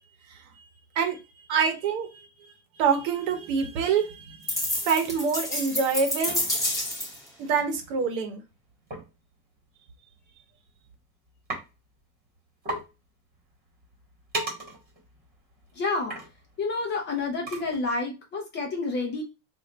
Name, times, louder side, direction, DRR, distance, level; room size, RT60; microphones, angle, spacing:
voice 1, 1.5-2.1 2.8-4.4 4.8-6.4 7.4-8.4, right 6 dB, 55° right, 1.0 m, -25 dB
sound 1, 4.5-7.3, left 1 dB, 5° left, 1.0 m, -29 dB
sound 2, 8.9-9.1 10.1-10.3 10.7-11.0 11.5-11.6 12.0-12.1 12.4-12.5 12.6-12.9 13.3-18.0, right 2 dB, 20° right, 1.6 m, -37 dB
voice 2, 15.8-16.2 16.6-19.2, left 3 dB, 25° left, 0.6 m, -29 dB
3.1 x 2.5 x 3.9 m
supercardioid pair, 145°, 45 cm